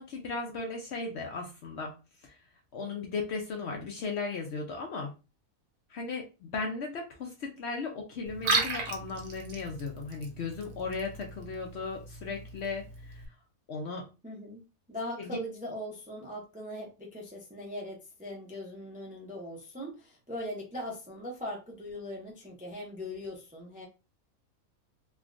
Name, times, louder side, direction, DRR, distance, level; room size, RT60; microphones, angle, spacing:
voice 1, 0.0-1.9 2.2-2.4 2.7-5.1 5.9-13.2 13.7-14.1 15.2-15.4, left 4 dB, 60° left, 2 dB, 0.7 m, -36 dB
Liquid, 8.3-13.3, right 4 dB, 85° right, 1.2 m, -35 dB
voice 2, 14.2-14.6 14.9-23.9, left 1 dB, 10° right, -1 dB, 0.4 m, -40 dB
3.4 x 2.3 x 2.4 m, 0.29 s
omnidirectional pair, 1.5 m